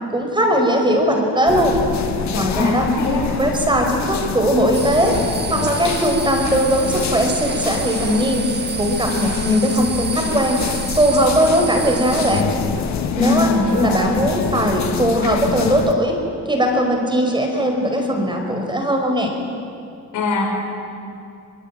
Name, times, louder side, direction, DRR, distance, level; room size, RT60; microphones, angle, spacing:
voice 1, 0.1-1.8 2.3-2.8 3.4-5.2 5.5-8.5 8.7-10.6 11.0-12.4 13.2-13.5 13.8-16.2 16.5-19.3, equal, 15° right, 2 dB, 5.0 m, -19 dB
sound 1, 1.5-15.9, left 7 dB, 65° left, 1.8 m, -26 dB
voice 2, 2.5-3.2 13.1-14.0 20.1-20.5, left 3 dB, 80° left, 1 dB, 6.7 m, -20 dB
sound 2, 4.7-12.4, right 5 dB, 35° right, 1.5 m, -29 dB
23.5 x 22.0 x 9.0 m, 2.5 s
cardioid pair, 90°, 30 cm